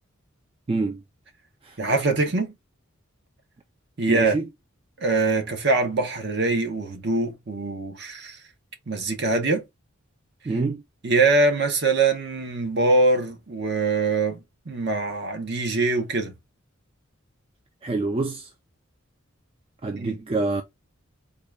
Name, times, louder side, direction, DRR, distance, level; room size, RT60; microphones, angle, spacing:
voice 1, 0.7-1.0 1.6-1.8 4.1-4.5 10.4-10.8 17.8-18.5 19.8-20.6, right 3 dB, 25° right, 0.3 m, -26 dB
voice 2, 1.8-2.5 4.0-4.4 5.0-8.4 8.9-9.6 11.0-14.4 14.7-16.3 19.9-20.1, right 3 dB, 50° right, 0.8 m, -23 dB
3.7 x 2.3 x 3.3 m
head